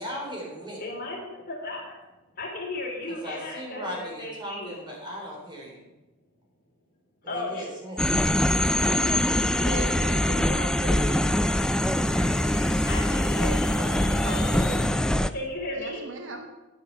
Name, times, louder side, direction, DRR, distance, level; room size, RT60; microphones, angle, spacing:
voice 1, 0.0-0.8 3.1-5.9 7.2-8.0, equal, 20° right, -2 dB, 3.7 m, -37 dB
voice 2, 0.8-1.8 2.3-4.8 7.2-7.7 8.8-10.0 12.9-14.6 15.3-16.0, left 2 dB, 45° left, -1 dB, 3.1 m, -35 dB
sound 1, 8.0-15.3, left 1 dB, 5° left, 0.3 m, -23 dB
voice 3, 9.7-11.3 14.2-15.3 15.7-16.5, right 2 dB, 60° right, 5 dB, 1.4 m, -38 dB
sound 2, 10.1-14.9, left 7 dB, 60° left, 1.7 m, -45 dB
10.0 x 9.9 x 5.7 m, 1.1 s
head